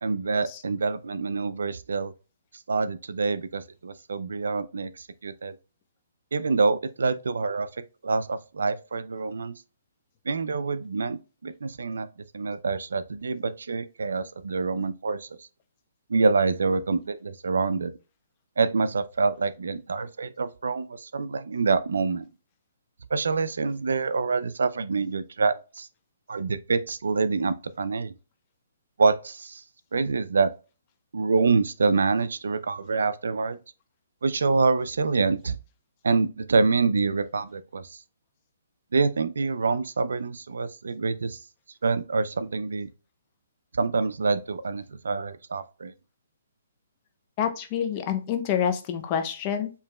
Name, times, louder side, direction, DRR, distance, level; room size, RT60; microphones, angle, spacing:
voice 1, 0.0-2.1 2.7-5.6 6.3-7.7 8.0-9.6 10.3-12.1 12.3-15.3 16.1-17.9 18.6-22.3 23.1-25.9 26.3-28.1 29.0-29.6 29.9-30.5 31.1-33.6 34.2-35.6 36.0-38.0 38.9-41.4 41.8-42.9 43.7-45.9, right 4 dB, 85° right, 0.4 m, -26 dB
voice 2, 47.4-49.7, left 8 dB, 30° left, 0.6 m, -27 dB
4.7 x 3.0 x 2.2 m
hypercardioid pair, 160°, 0 cm